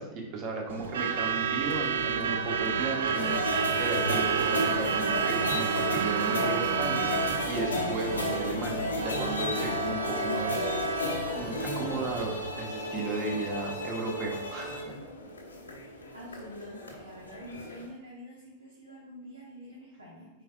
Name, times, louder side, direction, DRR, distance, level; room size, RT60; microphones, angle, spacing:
voice 1, 0.0-7.1 7.5-11.0 11.3-15.0, right 2 dB, 40° right, 0 dB, 1.5 m, -35 dB
Truck / Alarm, 0.7-12.6, right 7 dB, 60° right, 0.4 m, -30 dB
sound 1, 3.1-17.9, left 2 dB, 75° left, 1.0 m, -34 dB
voice 2, 8.6-9.0 15.9-20.4, equal, 80° right, -5 dB, 1.3 m, -47 dB
8.9 x 4.4 x 2.4 m, 1.0 s
figure-of-eight pair, 90°, 0 cm